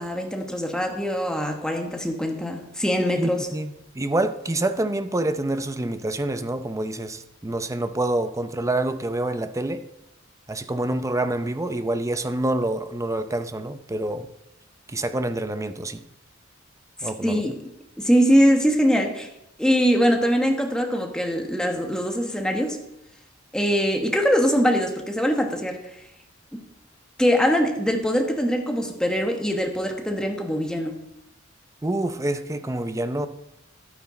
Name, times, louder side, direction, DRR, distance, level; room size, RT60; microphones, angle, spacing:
voice 1, 0.0-3.5 17.2-17.6 18.0-19.3 19.6-22.8 23.5-25.8 27.2-31.0, equal, 5° left, 3 dB, 1.2 m, -22 dB
voice 2, 3.2-9.8 10.5-14.3 14.9-16.0 17.0-17.4 31.8-33.3, right 1 dB, 15° right, 10 dB, 0.6 m, -27 dB
11.5 x 9.4 x 4.3 m, 0.84 s
head